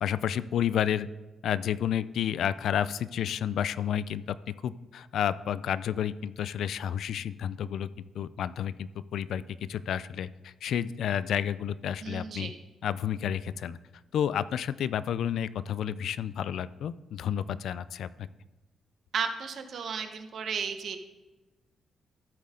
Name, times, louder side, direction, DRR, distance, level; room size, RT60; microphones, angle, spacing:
voice 1, 0.0-1.1 1.4-4.4 4.6-9.4 9.7-12.5 12.8-13.8 14.1-18.3, left 9 dB, 70° left, 16 dB, 0.3 m, -30 dB
voice 2, 12.0-12.6 19.1-21.0, right 6 dB, 55° right, 7 dB, 1.0 m, -34 dB
13.5 x 7.5 x 3.8 m, 1.1 s
cardioid pair, 145°, 0 cm